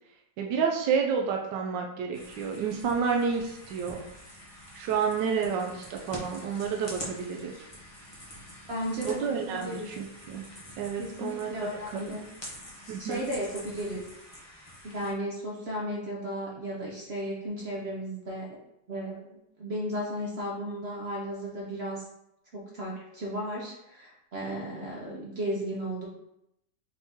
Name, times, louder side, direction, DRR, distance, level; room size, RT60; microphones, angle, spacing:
voice 1, 0.4-4.0 4.7-7.5 9.0-10.4 10.8-11.5 11.9-12.0 12.9-13.3, right 6 dB, 85° right, 1 dB, 1.2 m, -30 dB
sound 1, 2.1-15.1, equal, 40° left, 0.3 m, -46 dB
voice 2, 8.7-9.9 11.0-12.2 13.0-14.0 14.8-18.5 18.9-22.1 22.5-26.1, equal, 60° right, -3 dB, 0.7 m, -34 dB
4.3 x 2.7 x 3.6 m, 0.82 s
omnidirectional pair, 1.9 m